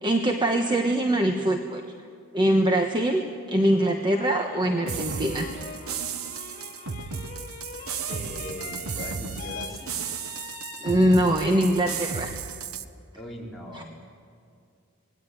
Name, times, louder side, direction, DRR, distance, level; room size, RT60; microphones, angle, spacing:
voice 1, 0.0-1.8 2.3-5.5 10.8-12.3 13.7-13.8, right 1 dB, 20° right, 3 dB, 1.2 m, -23 dB
sound 1, 3.6-11.8, left 5 dB, 35° left, 2.2 m, -42 dB
sound 2, 4.8-12.8, right 6 dB, 80° right, 1.1 m, -34 dB
voice 2, 8.1-10.0 13.1-13.8, equal, ahead, -5 dB, 4.3 m, -39 dB
26.5 x 19.0 x 9.4 m, 2.3 s
head